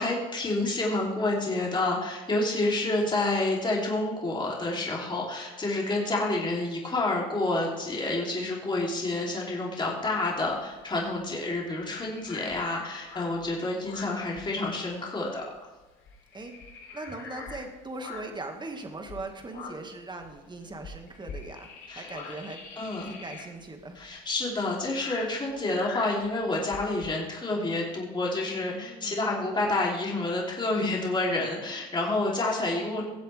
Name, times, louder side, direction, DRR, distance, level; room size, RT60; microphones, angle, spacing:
voice 1, 0.0-15.4 21.9-22.1 22.8-23.1 23.9-33.0, left 2 dB, 20° left, -3 dB, 3.3 m, -29 dB
sound 1, 10.0-15.0 15.2-15.5 15.8-18.5 19.0-27.1, left 4 dB, 65° left, 3.2 m, -44 dB
voice 2, 16.9-22.6 23.0-24.0 28.7-29.2, right 2 dB, 20° right, 4 dB, 1.9 m, -40 dB
18.0 x 7.7 x 3.5 m, 1.1 s
supercardioid pair, 85°, 21 cm